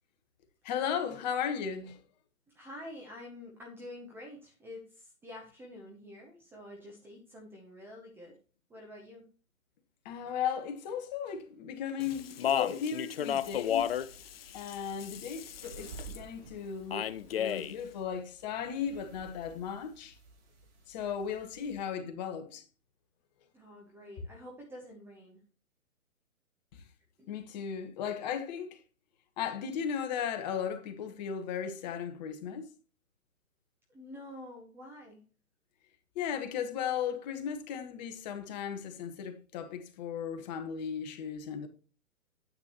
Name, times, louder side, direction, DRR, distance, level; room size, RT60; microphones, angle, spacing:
voice 1, 0.6-2.0 10.0-13.9 14.5-17.1 17.3-20.2 20.9-22.6 27.3-28.8 29.4-32.7 36.1-41.7, left 7 dB, 30° left, 1.3 m, -36 dB
voice 2, 2.5-8.4 8.7-9.3 23.5-25.4 27.2-27.3 33.9-35.2, left 1 dB, 5° right, 0.7 m, -48 dB
Speech, 12.0-16.2 16.9-17.8, left 9 dB, 45° left, 0.5 m, -33 dB
sound 1, 13.4-21.9, right 4 dB, 55° right, 3.8 m, -53 dB
9.5 x 8.5 x 3.0 m
hypercardioid pair, 135°, 42 cm